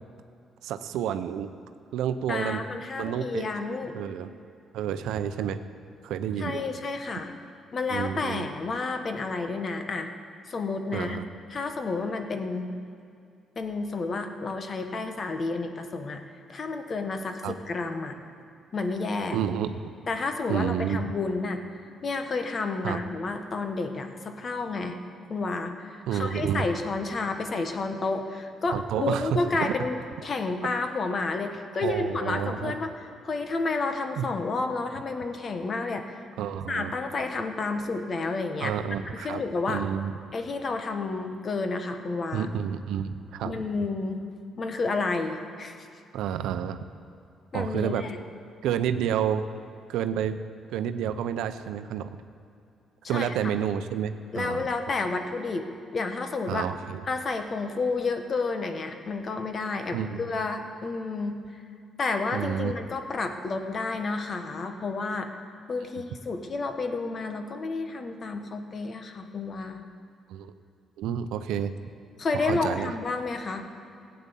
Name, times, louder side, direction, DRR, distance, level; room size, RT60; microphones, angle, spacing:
voice 1, 0.6-1.5 1.9-2.6 3.0-3.5 3.9-4.3 4.7-5.6 6.0-6.6 7.9-8.5 10.9-11.2 17.4-17.5 19.3-19.9 20.5-21.1 22.8-23.0 26.1-26.7 28.7-29.7 31.8-32.8 34.2-34.3 36.4-36.9 38.6-39.4 39.7-40.1 42.3-43.6 46.1-46.8 47.5-48.1 48.6-49.5 49.9-50.4 50.7-52.2 53.1-54.6 56.5-57.0 59.9-60.2 62.3-62.7 70.3-70.5 71.0-71.7 72.3-72.9, right 9 dB, 85° right, 10 dB, 0.6 m, -29 dB
voice 2, 2.3-4.0 6.4-7.3 7.7-10.1 10.5-11.2 11.5-12.7 13.6-16.2 16.5-18.2 18.7-19.4 20.1-25.0 25.3-32.9 33.2-36.3 36.7-38.7 39.1-39.9 40.3-42.5 43.4-44.2 44.6-45.9 47.5-48.2 53.1-53.3 54.3-56.7 57.1-61.6 62.0-65.3 65.7-69.8 72.2-73.6, left 3 dB, 45° left, 6 dB, 1.3 m, -30 dB
16.0 x 8.7 x 7.0 m, 2.4 s
cardioid pair, 90°, 0 cm